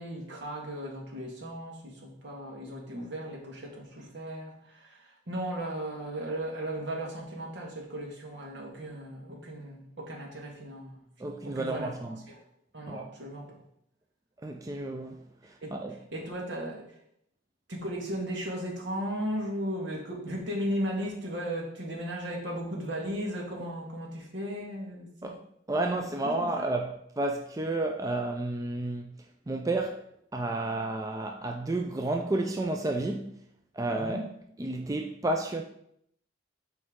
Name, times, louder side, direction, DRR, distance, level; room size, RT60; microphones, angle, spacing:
voice 1, 0.0-11.0 11.4-12.4 12.7-13.6 15.6-15.8 16.1-17.0 17.7-25.3 26.2-26.7 33.9-34.2, equal, 70° right, 1.7 m, -36 dB
voice 2, 11.2-12.2 12.9-13.1 14.4-15.2 15.7-16.0 25.2-25.4 25.7-29.1 29.5-30.0 30.3-33.4 33.7-34.2 34.6-35.6, right 2 dB, 20° right, 0.3 m, -31 dB
8.1 x 4.5 x 3.6 m
head